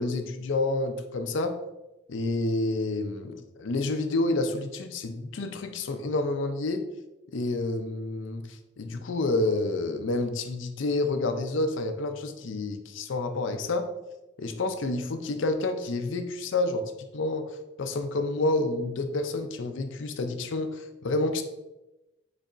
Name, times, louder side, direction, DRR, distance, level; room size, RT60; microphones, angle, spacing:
voice 1, 0.0-1.6 2.1-6.8 7.3-13.9 14.4-21.4, left 2 dB, 75° left, 8 dB, 0.5 m, -29 dB
5.2 x 4.0 x 2.5 m, 1.0 s
head